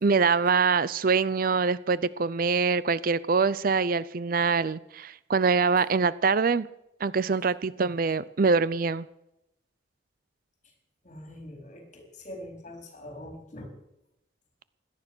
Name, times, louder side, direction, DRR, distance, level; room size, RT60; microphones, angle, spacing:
voice 1, 0.0-6.7 7.0-9.1, right 4 dB, 50° right, 18 dB, 0.5 m, -24 dB
voice 2, 11.0-13.7, left 1 dB, 40° left, 4 dB, 4.0 m, -43 dB
17.5 x 12.0 x 6.2 m, 0.85 s
head